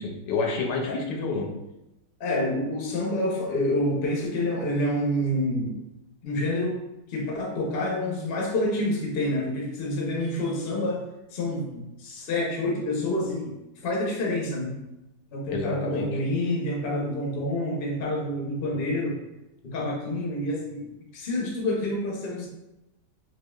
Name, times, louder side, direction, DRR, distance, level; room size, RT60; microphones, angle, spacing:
voice 1, 0.0-1.5 15.5-16.1, left 4 dB, 80° left, 1 dB, 1.3 m, -28 dB
voice 2, 2.2-5.7 6.2-6.8 7.1-11.0 11.3-14.8 15.3-19.2 19.6-22.5, left 1 dB, 50° left, -1 dB, 0.7 m, -28 dB
4.5 x 2.4 x 2.3 m, 0.93 s
omnidirectional pair, 1.8 m